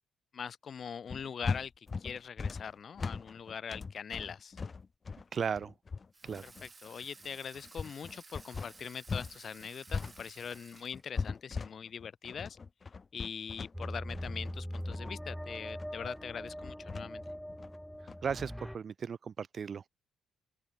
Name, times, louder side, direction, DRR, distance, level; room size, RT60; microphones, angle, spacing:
voice 1, 0.3-4.6 6.4-12.6 13.1-17.2, left 7 dB, 50° left, 6.8 m, -42 dB
sound 1, 1.1-9.3 9.6-18.4, left 4 dB, 35° left, 2.1 m, -40 dB
voice 2, 5.3-5.7 6.2-6.5 18.2-19.9, right 6 dB, 45° right, 1.2 m, -36 dB
Water tap faucet / Sink (filling or washing), 6.1-11.4, right 3 dB, 25° right, 5.7 m, -56 dB
sound 2, 13.7-18.8, equal, ahead, 1.2 m, -41 dB
cardioid pair, 90°, 0 cm